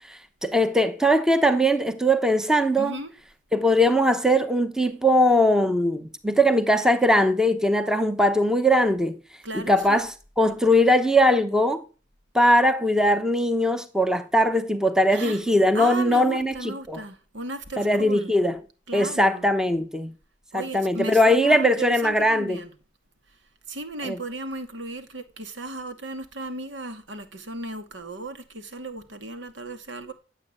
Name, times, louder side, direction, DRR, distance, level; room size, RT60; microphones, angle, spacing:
voice 1, 0.1-3.0 3.5-9.2 9.5-11.8 12.3-17.0 17.8-18.6 18.9-20.1 20.5-22.6 24.0-24.2, equal, 5° right, 0.9 m, -20 dB
voice 2, 2.8-3.1 9.4-10.0 15.1-15.4 15.7-18.3 18.9-19.5 20.5-22.7 23.7-30.1, right 2 dB, 75° right, 2.6 m, -35 dB
16.5 x 8.1 x 8.9 m
head